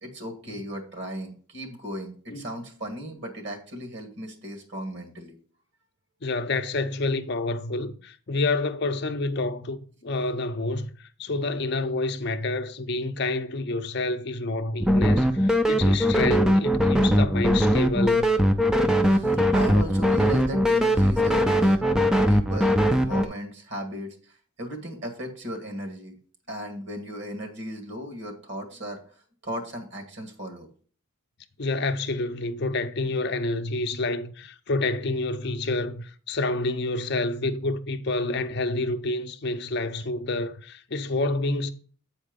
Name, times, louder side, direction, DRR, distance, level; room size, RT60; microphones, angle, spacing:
voice 1, 0.0-5.4 19.0-21.9 22.3-26.2 26.5-29.0 29.4-30.7, equal, 55° right, 1.8 m, -36 dB
voice 2, 6.2-18.3 19.4-19.5 31.6-41.7, left 2 dB, 50° left, 0.6 m, -28 dB
sound 1, 14.8-23.2, equal, 5° right, 0.4 m, -20 dB
8.4 x 4.4 x 5.1 m
head